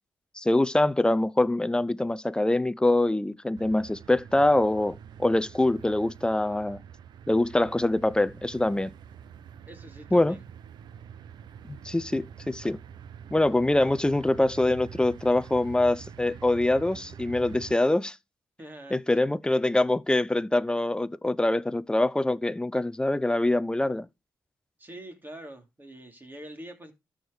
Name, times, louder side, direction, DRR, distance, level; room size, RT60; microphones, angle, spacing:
voice 1, 0.4-6.8 7.3-8.9 10.1-10.4 11.7-12.8 13.3-18.2 18.9-24.1, left 2 dB, 10° left, 0.6 m, -24 dB
sound 1, 3.6-17.8, right 8 dB, 70° right, 0.7 m, -46 dB
voice 2, 9.6-10.4 18.6-19.2 24.8-26.9, right 1 dB, 25° right, 3.1 m, -45 dB
13.5 x 5.0 x 4.8 m
cardioid pair, 70°, 8 cm